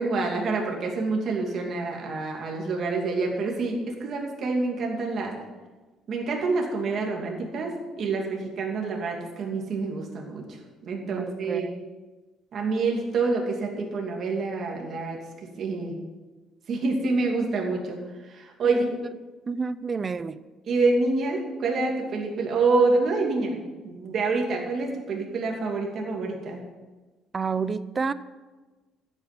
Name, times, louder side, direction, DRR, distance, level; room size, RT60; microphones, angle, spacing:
voice 1, 0.0-5.3 6.1-10.4 10.9-11.7 12.5-15.2 15.6-16.0 16.7-18.0 18.3-18.8 20.7-23.6 23.8-26.6, right 3 dB, 40° right, 0 dB, 2.6 m, -27 dB
voice 2, 11.1-11.8 18.6-18.8 19.5-20.4 27.3-28.1, right 5 dB, 20° right, 15 dB, 0.4 m, -30 dB
14.0 x 8.7 x 6.1 m, 1.3 s
cardioid pair, 175°, 0 cm